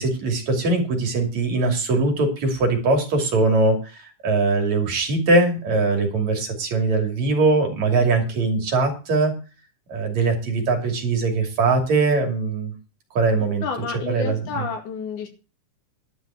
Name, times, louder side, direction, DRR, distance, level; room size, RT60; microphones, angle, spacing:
voice 1, 0.0-9.3 9.9-12.7 13.2-13.6 14.1-14.7, right 3 dB, 65° right, 3 dB, 4.0 m, -21 dB
voice 2, 13.4-15.3, left 5 dB, 80° left, 4 dB, 3.8 m, -30 dB
11.5 x 5.4 x 8.6 m, 0.34 s
omnidirectional pair, 3.5 m